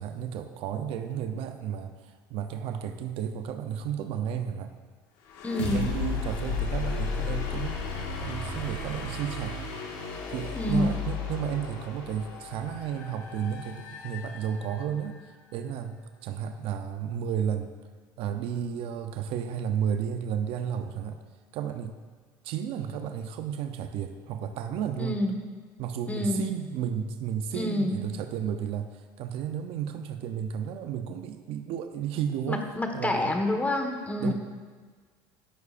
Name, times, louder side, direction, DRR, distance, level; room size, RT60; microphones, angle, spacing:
voice 1, 0.0-4.7 5.6-7.8 8.2-9.7 10.3-17.7 18.2-21.2 21.5-22.0 22.4-25.2 25.8-32.6 32.9-33.4 34.2-34.3, right 8 dB, 65° right, 8 dB, 0.6 m, -33 dB
sound 1, 5.3-15.0, left 4 dB, 85° left, 1.7 m, -34 dB
voice 2, 5.4-5.9 10.5-10.9 25.0-25.3 26.1-26.5 27.5-28.0 32.5-34.3, left 1 dB, 15° left, 4 dB, 1.4 m, -28 dB
14.5 x 8.1 x 2.5 m, 1.5 s
supercardioid pair, 90°, 10 cm